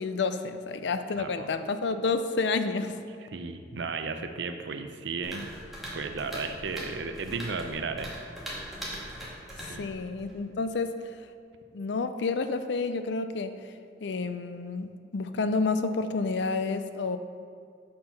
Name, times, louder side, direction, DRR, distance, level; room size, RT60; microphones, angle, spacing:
voice 1, 0.0-3.0 9.8-11.0 11.7-13.5 14.0-17.2, left 4 dB, 70° left, 10 dB, 0.5 m, -29 dB
voice 2, 1.2-1.5 3.3-5.5 5.9-8.1 9.5-9.9, right 4 dB, 80° right, 7 dB, 0.6 m, -34 dB
sound 1, 5.2-10.4, equal, ahead, 1.7 m, -41 dB
6.7 x 5.7 x 5.8 m, 2.2 s
head